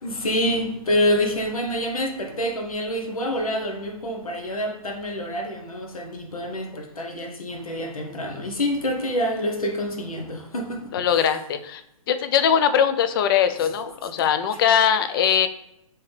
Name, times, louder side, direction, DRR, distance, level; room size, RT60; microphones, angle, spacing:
voice 1, 0.0-11.3 13.6-13.7 14.2-14.3, equal, 90° left, 0.8 m, -27 dB
voice 2, 10.9-11.8 12.1-15.5, left 8 dB, 40° left, 0.4 m, -21 dB
3.3 x 2.9 x 3.1 m
hypercardioid pair, 130°, 18 cm